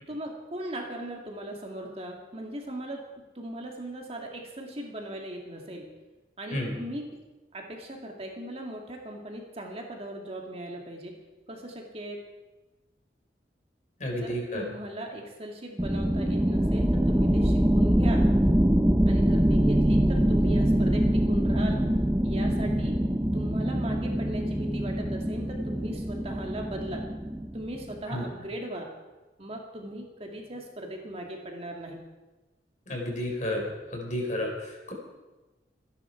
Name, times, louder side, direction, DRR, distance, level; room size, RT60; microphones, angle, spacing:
voice 1, 0.1-3.0 3.3-5.9 6.4-7.1 7.5-11.1 11.5-12.2 14.2-18.2 19.0-21.8 22.2-23.0 23.3-27.0 27.5-28.9 29.4-32.0, right 1 dB, 35° right, 1 dB, 2.3 m, -38 dB
voice 2, 14.0-14.6 28.1-28.2 32.9-33.6 33.9-34.9, left 1 dB, 45° left, 0 dB, 4.4 m, -31 dB
sound 1, 15.8-28.1, equal, 10° right, 0.7 m, -24 dB
26.0 x 11.0 x 4.6 m, 1.1 s
head